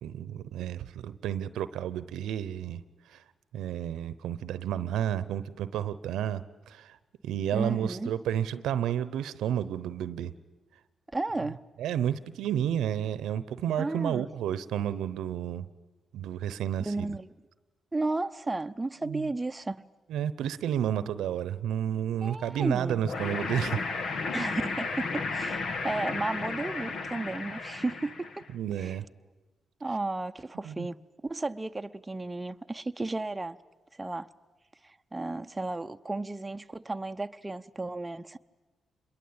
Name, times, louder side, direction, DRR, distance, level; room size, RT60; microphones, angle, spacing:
voice 1, 0.0-2.8 3.1-3.2 3.5-7.0 7.2-10.3 11.8-15.7 16.1-17.2 19.0-19.3 20.1-23.8 28.5-29.0 30.6-30.9, right 10 dB, 85° right, 0.9 m, -31 dB
voice 2, 7.5-8.1 11.1-11.6 13.8-14.3 16.9-17.3 17.9-19.8 22.2-23.0 24.3-28.2 28.8-29.0 29.8-33.6 34.0-34.3 34.8-38.4, right 2 dB, 20° right, 0.8 m, -33 dB
sound 1, 23.0-28.5, left 4 dB, 65° left, 1.9 m, -33 dB
26.5 x 22.0 x 8.8 m
supercardioid pair, 60°, 0 cm